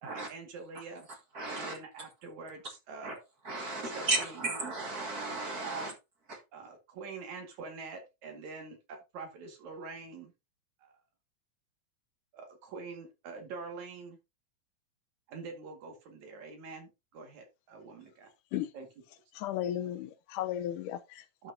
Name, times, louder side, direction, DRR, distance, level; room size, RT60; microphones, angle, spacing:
voice 1, 0.0-1.1 1.5-3.2 3.5-4.3 5.6-5.9 6.5-10.3 10.8-11.0 12.3-14.2 15.3-18.3 18.7-18.9 21.4-21.5, right 4 dB, 70° right, 3.2 m, -45 dB
voice 2, 1.3-1.8 3.0-3.2 3.4-5.9 6.3-6.4, right 2 dB, 40° right, 1.6 m, -34 dB
voice 3, 19.4-21.2, left 12 dB, 90° left, 2.3 m, -35 dB
12.0 x 5.9 x 2.7 m
omnidirectional pair, 3.6 m